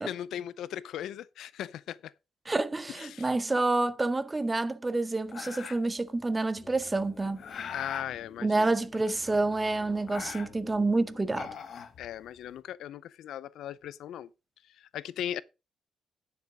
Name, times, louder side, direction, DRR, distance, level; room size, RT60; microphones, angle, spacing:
voice 1, 0.0-2.1 2.9-3.3 7.7-8.7 12.0-14.3 14.6-15.4, left 11 dB, 85° left, 0.5 m, -38 dB
voice 2, 2.5-7.4 8.4-11.5, right 2 dB, 15° right, 0.7 m, -28 dB
sound 1, 5.3-6.0 6.8-8.1 8.9-9.6 9.9-10.8 11.2-12.5, left 7 dB, 50° left, 1.2 m, -42 dB
sound 2, 6.5-11.6, left 4 dB, 30° left, 2.7 m, -52 dB
9.5 x 6.8 x 4.9 m
cardioid pair, 160°, 0 cm